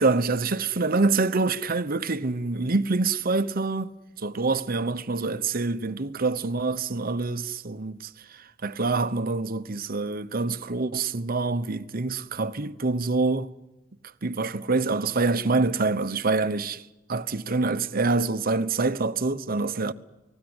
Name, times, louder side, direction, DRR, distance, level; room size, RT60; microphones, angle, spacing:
voice 1, 0.0-13.5 14.2-19.9, right 3 dB, 50° right, 1.0 m, -26 dB
29.5 x 20.0 x 8.0 m
head